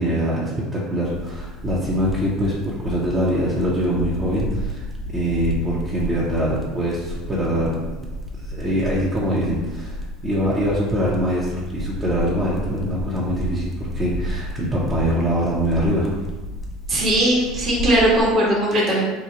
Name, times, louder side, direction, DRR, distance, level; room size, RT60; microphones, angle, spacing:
voice 1, 0.0-4.8 5.1-8.1 8.4-10.0 10.2-16.1, equal, 20° right, -8 dB, 1.0 m, -23 dB
sound 1, 1.0-18.2, left 1 dB, 10° left, 0.8 m, -32 dB
voice 2, 16.9-19.1, right 1 dB, 40° right, -5 dB, 1.3 m, -19 dB
4.9 x 2.2 x 3.0 m, 1.2 s
hypercardioid pair, 75°, 0 cm